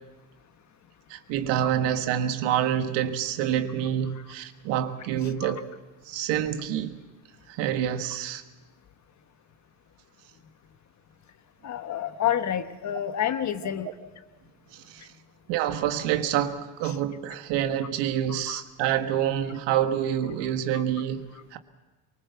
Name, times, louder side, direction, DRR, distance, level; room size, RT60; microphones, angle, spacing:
voice 1, 1.1-5.7 6.0-6.9 7.5-8.4 14.7-15.1 15.5-21.6, right 10 dB, 80° right, 8 dB, 1.7 m, -27 dB
voice 2, 11.6-13.9 18.3-18.6 20.7-20.8, left 10 dB, 40° left, 10 dB, 1.2 m, -29 dB
23.5 x 20.0 x 7.1 m, 1.2 s
cardioid pair, 115°, 41 cm